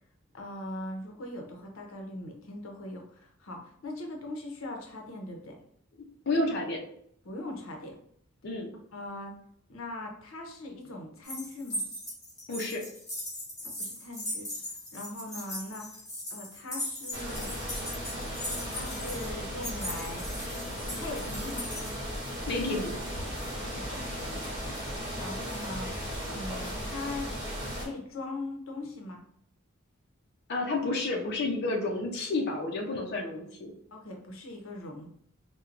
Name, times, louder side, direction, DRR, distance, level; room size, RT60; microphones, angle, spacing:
voice 1, 0.3-5.6 7.2-8.0 8.9-9.4 9.7-11.8 13.6-14.5 14.9-16.0 16.3-17.5 18.6-20.3 21.0-21.7 23.7-24.4 25.2-25.9 26.3-27.3 27.8-29.2 33.9-35.1, left 2 dB, 90° left, 2 dB, 0.7 m, -40 dB
voice 2, 6.3-6.8 8.4-8.7 12.5-12.8 22.5-22.9 30.5-33.7, left 2 dB, 55° left, -1 dB, 0.6 m, -30 dB
sound 1, 11.2-21.9, left 1 dB, 20° left, 1.5 m, -39 dB
sound 2, 17.1-27.9, equal, 20° right, 1.3 m, -36 dB
4.4 x 2.2 x 2.4 m, 0.67 s
head